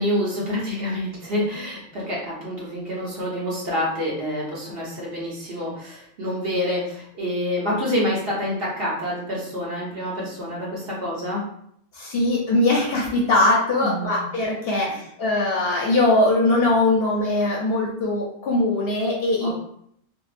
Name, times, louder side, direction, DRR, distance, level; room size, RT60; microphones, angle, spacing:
voice 1, 0.0-11.4 13.8-14.2 14.7-14.9 19.4-19.5, left 1 dB, 55° right, -5 dB, 1.0 m, -27 dB
voice 2, 11.9-19.5, left 2 dB, 60° left, -3 dB, 0.7 m, -21 dB
2.8 x 2.0 x 2.4 m, 0.70 s
omnidirectional pair, 1.3 m